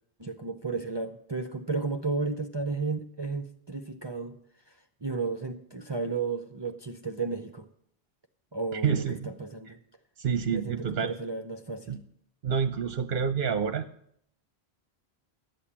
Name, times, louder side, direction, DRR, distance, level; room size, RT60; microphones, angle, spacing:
voice 1, 0.2-4.4 5.0-7.7 8.5-9.8 10.5-12.0, right 4 dB, 30° right, 0.6 m, -33 dB
voice 2, 8.7-9.3 9.7-9.8 10.2-11.1 11.9-12.0 12.4-13.9, right 7 dB, 60° right, 0.8 m, -28 dB
12.5 x 8.5 x 7.3 m
omnidirectional pair, 1.1 m